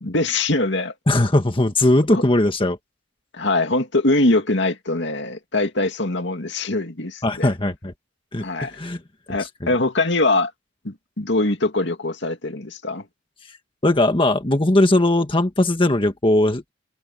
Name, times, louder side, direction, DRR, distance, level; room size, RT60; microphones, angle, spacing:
voice 1, 0.0-0.9 2.1-2.2 3.3-7.5 8.4-8.7 9.3-10.5 10.8-13.0, left 2 dB, 65° left, 2.5 m, -22 dB
voice 2, 1.1-2.8 7.2-7.9 8.3-9.0 9.4-9.7 13.8-16.7, left 1 dB, 25° left, 1.6 m, -19 dB
head